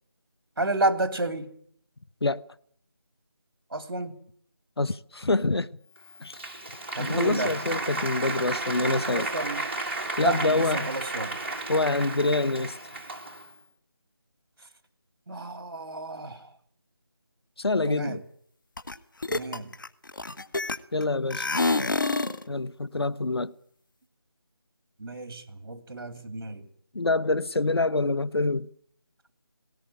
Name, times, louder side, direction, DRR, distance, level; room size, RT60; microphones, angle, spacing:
voice 1, 0.6-1.5 3.7-4.2 6.9-7.5 8.8-9.6 10.2-11.4 15.3-16.5 17.8-18.2 19.3-19.7 25.0-26.7, right 2 dB, 55° right, 2.7 m, -31 dB
voice 2, 4.8-5.7 6.2-6.4 7.0-9.3 10.2-10.9 11.7-12.8 17.6-18.2 20.9-21.5 22.5-23.5 26.9-28.7, left 3 dB, 85° left, 1.0 m, -26 dB
Applause, 6.0-13.6, right 2 dB, 30° right, 2.2 m, -33 dB
sound 1, 18.8-18.9 19.2-21.0 21.3-22.4, left 3 dB, 55° left, 1.5 m, -27 dB
18.5 x 18.0 x 9.8 m
figure-of-eight pair, 175°, 13 cm